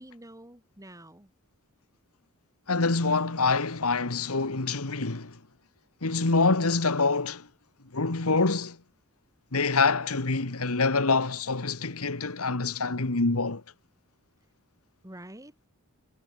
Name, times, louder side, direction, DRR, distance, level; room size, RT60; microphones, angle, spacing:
voice 1, 0.0-1.3 15.0-15.7, right 1 dB, 15° right, 3.1 m, -47 dB
voice 2, 2.7-5.4 6.0-7.5 7.9-8.8 9.5-13.6, left 3 dB, 75° left, 1.7 m, -26 dB
head